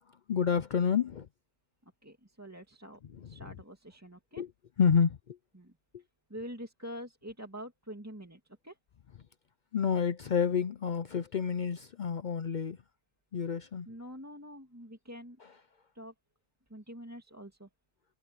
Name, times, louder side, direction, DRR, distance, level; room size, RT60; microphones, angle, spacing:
voice 1, 0.3-1.3 3.1-3.4 4.4-4.5 4.8-5.4 9.7-12.8 13.3-13.9 15.4-15.5, left 7 dB, 70° left, 0.4 m, -29 dB
voice 2, 2.0-3.0 3.2-4.4 5.6-5.7 6.3-8.7 13.9-15.4 15.9-16.1 16.7-17.7, equal, 10° right, 2.3 m, -45 dB
omnidirectional pair, 1.5 m